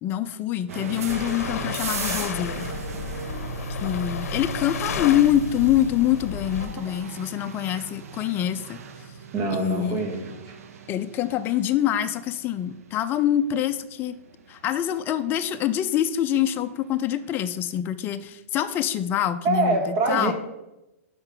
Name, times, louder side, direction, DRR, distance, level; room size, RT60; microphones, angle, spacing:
voice 1, 0.0-2.7 3.8-8.8 9.5-10.0 10.9-14.2 14.5-20.3, left 11 dB, 25° left, 11 dB, 0.4 m, -25 dB
sound 1, 0.7-17.5, right 5 dB, 75° right, 0.8 m, -38 dB
sound 2, 1.1-6.7, left 7 dB, 80° left, 0.7 m, -33 dB
voice 2, 9.3-10.6 19.4-20.3, right 3 dB, 40° right, 3 dB, 1.5 m, -25 dB
5.7 x 5.3 x 5.9 m, 0.98 s
hypercardioid pair, 140°, 8 cm